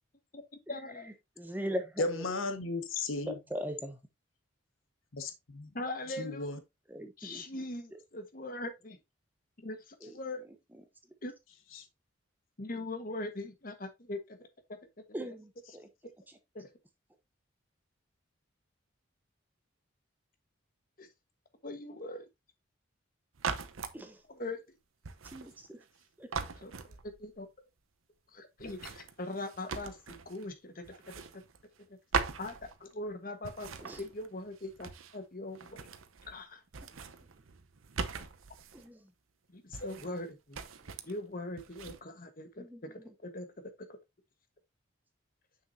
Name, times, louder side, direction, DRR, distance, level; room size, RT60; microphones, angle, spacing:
voice 1, 0.7-1.1 5.7-6.6 7.2-9.0 9.6-10.4 11.2-11.3 12.6-14.4 16.5-16.7 21.0-21.1 21.6-22.3 24.3-24.6 26.6-27.5 28.3-30.0 30.2-30.8 32.4-33.7 34.0-35.9 36.3-36.6 39.5-40.6 41.1-42.6 42.9-43.5, left 2 dB, 45° left, 1.3 m, -41 dB
voice 2, 1.4-2.2 3.5-4.0 6.9-7.6 10.0-10.1 15.1-15.9 23.9-24.2 25.3-25.8 26.2-26.3 33.8-34.0 38.7-39.0 42.6-42.8, equal, 10° right, 0.9 m, -39 dB
voice 3, 2.0-3.4 5.1-5.7 6.1-6.6 11.7-11.9 15.7-15.8, left 3 dB, 85° left, 1.2 m, -35 dB
sound 1, 23.4-24.0 25.0-26.0 26.3-27.4 28.6-30.5 30.8-31.9 32.1-33.1 33.4-35.2 35.5-36.4 36.7-38.9 39.7-40.3 40.5-41.2 41.6-42.0, right 5 dB, 90° right, 0.8 m, -40 dB
7.2 x 6.4 x 2.7 m
head